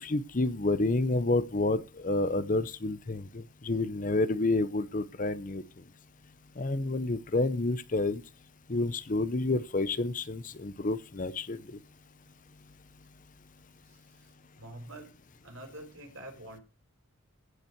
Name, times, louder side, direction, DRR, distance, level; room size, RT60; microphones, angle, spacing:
voice 1, 0.0-5.6 6.6-8.2 8.7-11.6, left 2 dB, 40° left, 0.7 m, -29 dB
voice 2, 13.9-14.3 14.6-15.1 15.4-16.6, right 1 dB, 70° right, 4.4 m, -46 dB
16.0 x 5.5 x 4.6 m
head